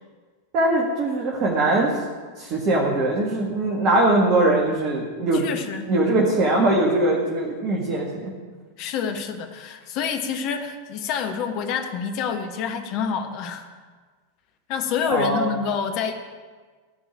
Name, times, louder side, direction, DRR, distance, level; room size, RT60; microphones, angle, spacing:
voice 1, 0.5-2.0 2.4-5.5 5.9-8.3 15.1-15.5, right 2 dB, 35° right, -2 dB, 2.1 m, -21 dB
voice 2, 5.3-5.9 8.8-13.7 14.7-16.1, left 7 dB, 40° left, 5 dB, 1.4 m, -27 dB
16.5 x 5.5 x 8.8 m, 1.5 s
figure-of-eight pair, 90°, 0 cm